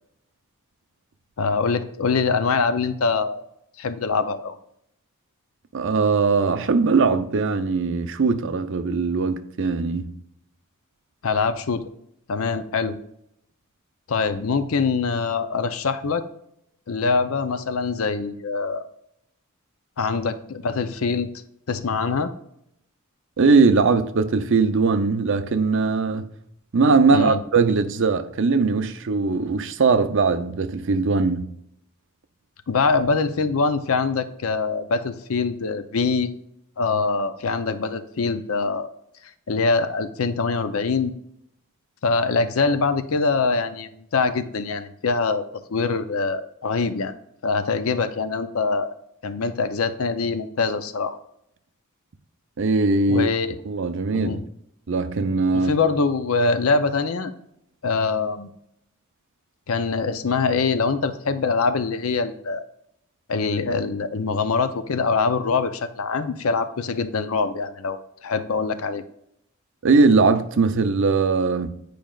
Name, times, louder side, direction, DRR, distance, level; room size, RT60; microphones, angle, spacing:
voice 1, 1.4-3.4 3.8-4.6 11.2-11.8 12.3-13.0 14.1-16.2 16.9-18.8 20.0-21.3 21.7-22.3 27.1-27.4 32.7-36.3 36.8-38.9 39.5-41.1 42.0-45.4 45.7-47.1 47.4-48.9 49.2-51.2 53.1-53.6 54.1-54.4 55.5-57.3 57.8-58.5 59.7-62.6 63.3-69.0, left 4 dB, 70° left, 0.6 m, -23 dB
voice 2, 5.7-10.1 23.4-26.3 26.7-31.5 52.6-53.3 53.7-54.4 54.9-55.7 69.8-71.7, right 4 dB, 60° right, 0.6 m, -20 dB
9.2 x 5.0 x 2.4 m
head